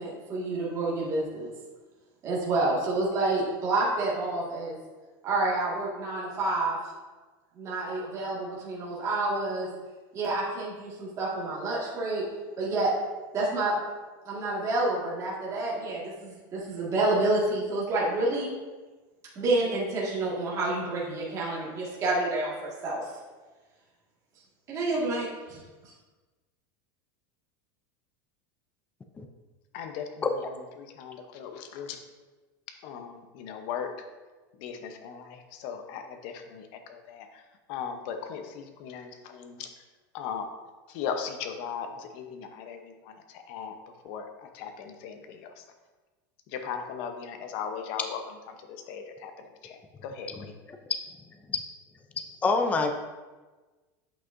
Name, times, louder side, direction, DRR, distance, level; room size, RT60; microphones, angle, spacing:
voice 1, 0.0-1.5 2.2-4.8 5.2-6.8 7.6-9.7 10.1-12.2 12.6-12.9 13.3-13.7 14.3-18.5 19.4-22.5 22.8-23.0 24.7-25.6, right 2 dB, 30° right, -6 dB, 1.9 m, -28 dB
voice 2, 29.7-30.3 30.8-32.0 32.8-33.9 34.6-37.3 37.7-39.7 40.1-40.5 40.9-42.9 43.5-43.8 44.0-45.5 46.5-48.2 48.9-49.3 49.6-50.5, left 7 dB, 55° left, 6 dB, 0.8 m, -37 dB
voice 3, 52.4-52.9, left 4 dB, 15° left, 5 dB, 0.4 m, -26 dB
8.1 x 6.0 x 2.6 m, 1.3 s
supercardioid pair, 150°, 11 cm